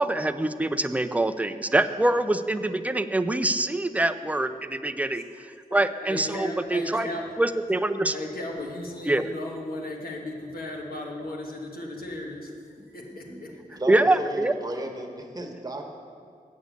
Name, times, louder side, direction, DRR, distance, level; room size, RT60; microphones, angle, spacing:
voice 1, 0.0-5.2 5.7-7.1 7.4-8.2 9.1-9.3 13.3-13.4 13.9-14.5, right 2 dB, 10° right, 11 dB, 0.4 m, -24 dB
voice 2, 5.7-7.3 8.1-12.5 12.9-13.8, left 1 dB, 80° left, -1 dB, 1.6 m, -36 dB
voice 3, 13.7-15.8, right 1 dB, 25° right, 2 dB, 1.2 m, -34 dB
8.2 x 6.3 x 8.2 m, 2.3 s
wide cardioid pair, 95°, 15 cm